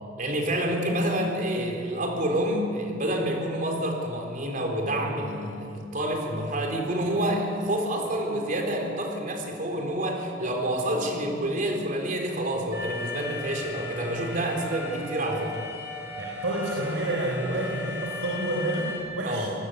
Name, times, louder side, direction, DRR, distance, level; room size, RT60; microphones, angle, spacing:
voice 1, 0.2-15.6 19.2-19.5, right 1 dB, 50° right, 1 dB, 4.0 m, -28 dB
Alarm, 12.7-19.0, left 2 dB, 15° right, 6.8 m, -37 dB
voice 2, 16.2-19.5, right 1 dB, 80° right, -2 dB, 3.8 m, -29 dB
26.0 x 19.5 x 8.2 m, 2.7 s
head